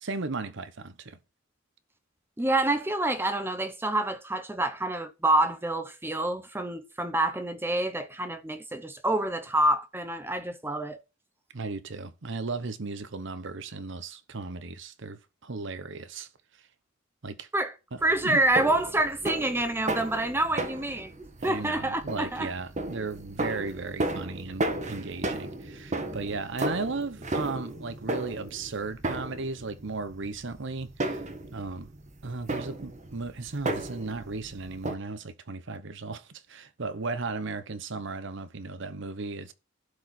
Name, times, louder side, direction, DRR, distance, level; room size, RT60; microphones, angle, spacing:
voice 1, 0.0-1.2 11.5-16.3 17.2-17.5 17.9-18.4 21.4-31.2 31.5-31.9 32.2-39.5, right 3 dB, 65° right, 0.9 m, -36 dB
voice 2, 2.4-11.0 17.5-17.7 18.0-22.5, right 1 dB, 10° right, 0.8 m, -27 dB
sound 1, 18.0-34.9, right 2 dB, 35° right, 1.4 m, -35 dB
12.0 x 4.9 x 6.0 m
head